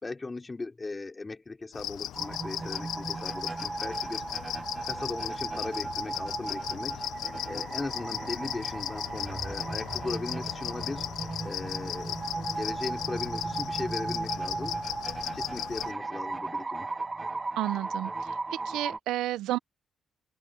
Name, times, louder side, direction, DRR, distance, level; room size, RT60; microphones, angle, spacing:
voice 1, 0.0-4.3 4.8-7.0 7.5-11.1 11.4-12.2 12.6-14.8 15.3-16.9, left 3 dB, 25° left, 3.9 m, -38 dB
sound 1, 1.7-15.9, left 12 dB, 75° left, 0.4 m, -37 dB
sound 2, 2.1-19.0, right 3 dB, 25° right, 0.4 m, -36 dB
sound 3, 5.5-15.7, left 5 dB, 40° left, 7.8 m, -61 dB
voice 2, 17.6-19.6, right 15 dB, 90° right, 0.6 m, -32 dB
open air
cardioid pair, 90°, 0 cm